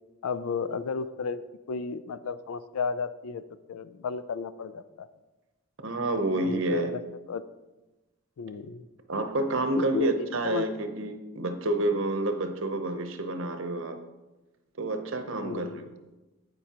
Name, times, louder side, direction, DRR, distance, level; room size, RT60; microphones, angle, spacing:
voice 1, 0.2-1.4 1.7-3.4 3.7-5.1 6.4-7.0 7.3-7.4 8.4-8.9 9.8-10.7 15.4-15.9, left 5 dB, 75° left, 14 dB, 0.4 m, -33 dB
voice 2, 5.8-6.9 9.1-14.0 14.8-15.7, right 2 dB, 60° right, 7 dB, 0.8 m, -29 dB
15.5 x 5.3 x 2.9 m, 1.1 s
head